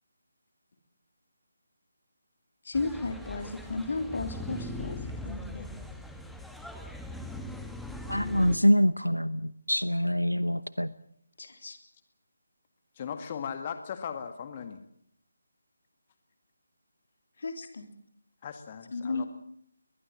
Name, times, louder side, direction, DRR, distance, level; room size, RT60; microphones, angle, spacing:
voice 1, 2.7-5.0 5.2-5.7 11.4-11.8 17.4-17.9 18.9-19.3, left 3 dB, 50° left, 6 dB, 3.6 m, -34 dB
sound 1, 2.7-8.6, left 1 dB, ahead, 1.4 m, -40 dB
voice 2, 8.1-10.9, equal, 90° left, 16 dB, 0.9 m, -25 dB
voice 3, 13.0-14.8 18.4-19.3, left 7 dB, 30° left, 8 dB, 1.9 m, -38 dB
22.0 x 21.0 x 7.5 m, 0.69 s
figure-of-eight pair, 150°, 0 cm